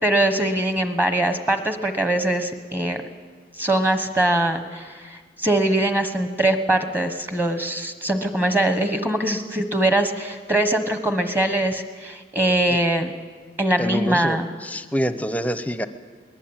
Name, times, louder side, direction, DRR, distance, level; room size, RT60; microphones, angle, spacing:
voice 1, 0.0-3.0 3.6-13.1 13.6-14.5, right 1 dB, 10° right, 7 dB, 1.3 m, -22 dB
voice 2, 13.8-14.4 14.6-15.9, equal, 10° left, 11 dB, 0.8 m, -26 dB
22.0 x 20.0 x 8.9 m, 1.5 s
head